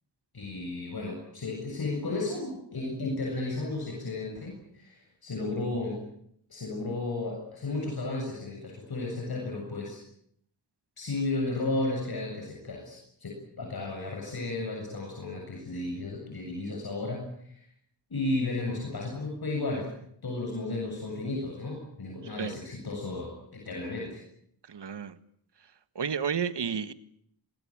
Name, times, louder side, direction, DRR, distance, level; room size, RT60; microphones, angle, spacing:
voice 1, 0.3-6.0 6.5-10.0 11.0-17.6 18.1-19.9 20.2-24.2, left 2 dB, 60° left, 1 dB, 7.7 m, -33 dB
voice 2, 24.7-25.2 26.0-26.9, right 7 dB, 70° right, 12 dB, 1.8 m, -31 dB
26.0 x 20.5 x 8.8 m, 0.70 s
wide cardioid pair, 110°, 43 cm